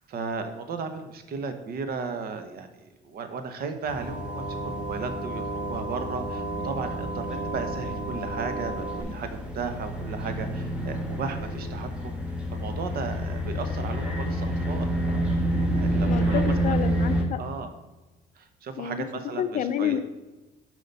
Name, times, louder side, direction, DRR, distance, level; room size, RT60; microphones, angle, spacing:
voice 1, 0.1-12.2 12.5-15.3 15.7-16.7 17.4-17.7 18.4-20.0, right 5 dB, 65° right, 8 dB, 1.1 m, -35 dB
sound 1, 3.8-17.2, right 1 dB, 5° right, 1.6 m, -29 dB
sound 2, 4.0-9.0, right 2 dB, 25° right, 2.2 m, -34 dB
voice 2, 16.1-17.4 18.8-19.1 19.4-20.0, left 9 dB, 50° left, 10 dB, 0.6 m, -28 dB
8.1 x 5.0 x 5.4 m, 1.1 s
cardioid pair, 110°, 17 cm